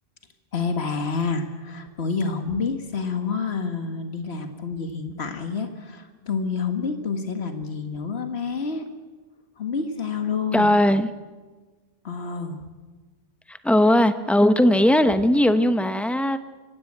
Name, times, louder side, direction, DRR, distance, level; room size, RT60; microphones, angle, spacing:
voice 1, 0.5-8.8 9.6-10.7 12.0-12.6, left 5 dB, 75° left, 6 dB, 2.0 m, -28 dB
voice 2, 10.5-11.1 13.5-16.4, left 1 dB, ahead, 10 dB, 0.9 m, -19 dB
25.0 x 16.0 x 8.8 m, 1.3 s
omnidirectional pair, 1.1 m